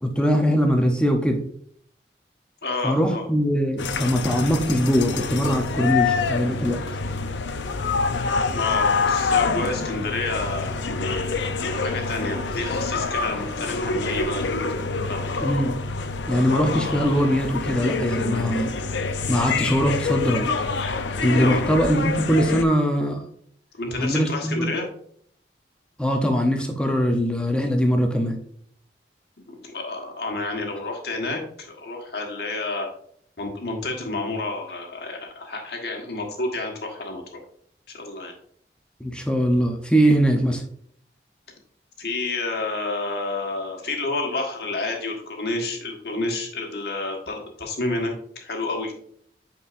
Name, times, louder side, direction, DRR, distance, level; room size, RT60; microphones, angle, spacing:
voice 1, 0.0-1.4 2.8-6.8 15.4-15.7 16.3-18.7 19.3-20.4 21.2-23.2 24.0-24.7 26.0-28.4 39.0-40.6, equal, 5° left, 3 dB, 0.7 m, -21 dB
voice 2, 2.6-3.3 8.5-14.4 15.1-15.3 21.3-21.6 23.8-24.8 29.5-32.9 33.4-37.2 37.9-38.3 42.0-48.9, left 2 dB, 60° left, 2 dB, 1.4 m, -29 dB
sound 1, 3.8-22.6, left 4 dB, 90° left, 0.6 m, -26 dB
8.8 x 4.4 x 2.5 m, 0.63 s
head